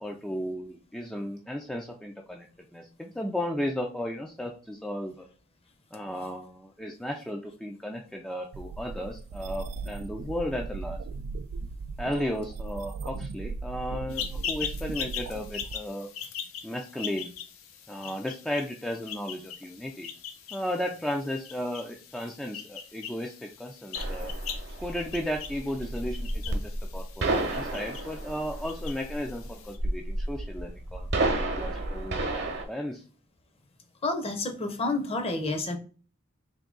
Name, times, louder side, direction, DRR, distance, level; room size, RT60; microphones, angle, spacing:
voice 1, 0.0-2.5 2.7-5.3 5.9-11.0 12.0-16.1 16.6-17.3 17.9-20.1 20.5-24.3 24.8-31.1 31.4-33.0, equal, 5° left, 0 dB, 0.3 m, -34 dB
sound 1, 8.5-15.8, right 4 dB, 75° right, 0.3 m, -37 dB
sound 2, 14.1-29.8, left 8 dB, 80° left, 0.6 m, -41 dB
sound 3, 23.9-32.6, right 2 dB, 55° right, 0.8 m, -31 dB
voice 2, 34.0-35.8, left 2 dB, 30° left, 6 dB, 0.7 m, -29 dB
3.5 x 2.7 x 3.8 m, 0.40 s
head